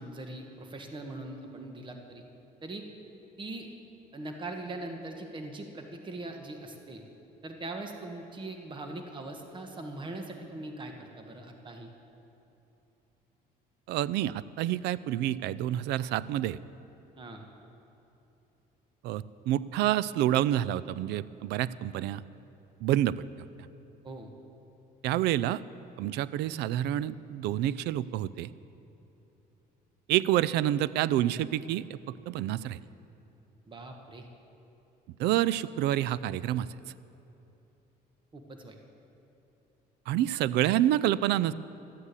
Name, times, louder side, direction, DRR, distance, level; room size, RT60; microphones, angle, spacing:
voice 1, 0.0-2.2 2.6-2.9 3.4-3.7 4.1-7.0 7.4-11.9 17.2-17.5 24.0-24.3 33.6-34.3 38.3-38.8, right 2 dB, 30° right, 4 dB, 1.4 m, -41 dB
voice 2, 13.9-16.6 19.0-22.2 22.8-23.3 25.0-25.6 26.0-28.5 30.1-32.8 35.2-36.7 40.1-41.5, right 13 dB, 85° right, 18 dB, 0.4 m, -28 dB
13.0 x 9.7 x 8.3 m, 2.9 s
cardioid pair, 110°, 17 cm